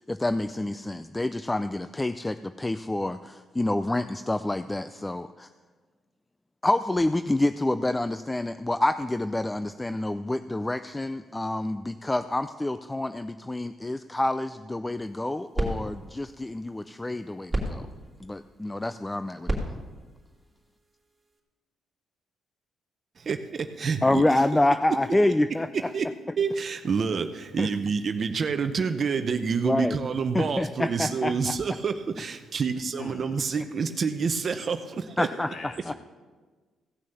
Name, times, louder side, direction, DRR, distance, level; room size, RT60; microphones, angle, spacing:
voice 1, 0.0-5.5 6.6-17.8 18.2-19.6 24.0-25.7 27.6-27.7 29.6-30.0 30.3-31.5 35.2-35.5 35.9-36.0, left 1 dB, 15° left, 11 dB, 0.4 m, -27 dB
sound 1, 15.0-21.4, right 1 dB, 15° right, 3.0 m, -35 dB
voice 2, 23.2-24.3 25.7-26.1 26.4-35.5, right 5 dB, 45° right, 9 dB, 0.7 m, -28 dB
voice 3, 33.0-33.5 35.4-35.9, left 4 dB, 60° left, 6 dB, 1.4 m, -42 dB
16.0 x 6.2 x 7.0 m, 1.4 s
cardioid pair, 90°, 0 cm